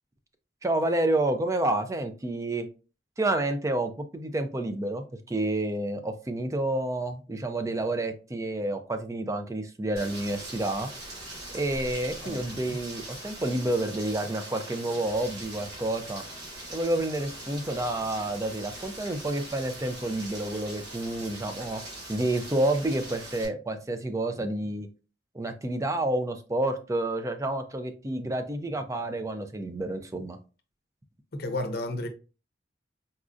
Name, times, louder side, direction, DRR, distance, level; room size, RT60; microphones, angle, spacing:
voice 1, 0.6-2.7 3.2-10.9 11.5-16.2 16.7-21.8 22.1-24.9 25.3-30.4, right 1 dB, 15° right, 0.4 m, -29 dB
Rain, 10.0-23.5, right 1 dB, 60° right, 1.6 m, -42 dB
voice 2, 12.2-12.8 31.3-32.1, left 2 dB, 60° left, 0.6 m, -33 dB
4.1 x 2.4 x 2.5 m
head